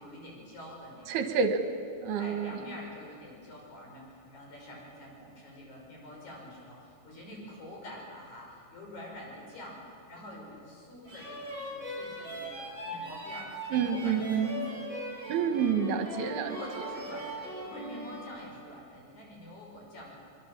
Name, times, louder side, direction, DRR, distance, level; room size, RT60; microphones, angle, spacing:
voice 1, 0.0-1.2 2.2-14.8 16.4-20.2, left 1 dB, 40° left, -2 dB, 6.7 m, -46 dB
voice 2, 1.1-1.6 2.0-2.6 13.7-14.5 15.3-16.6, right 6 dB, 70° right, 6 dB, 3.1 m, -28 dB
sound 1, 11.0-18.3, right 1 dB, 10° right, 5.9 m, -40 dB
25.0 x 22.0 x 7.4 m, 2.4 s
omnidirectional pair, 5.3 m